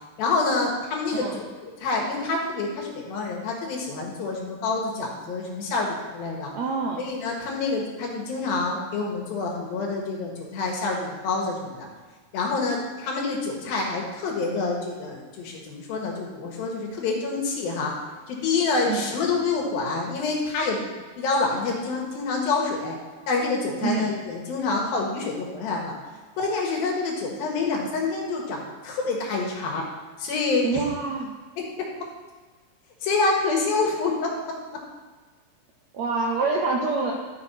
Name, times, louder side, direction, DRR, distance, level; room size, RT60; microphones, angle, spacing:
voice 1, 0.2-6.5 7.0-11.9 12.3-17.9 18.3-20.9 21.2-23.0 23.3-26.0 26.4-29.8 30.2-30.8 31.6-31.9 33.0-34.3, left 3 dB, 75° left, 0 dB, 3.2 m, -27 dB
voice 2, 6.5-7.0 18.9-19.1 23.8-24.1 30.6-31.3 35.9-37.1, right 4 dB, 80° right, -1 dB, 1.6 m, -26 dB
12.0 x 6.2 x 4.3 m, 1.4 s
omnidirectional pair, 4.2 m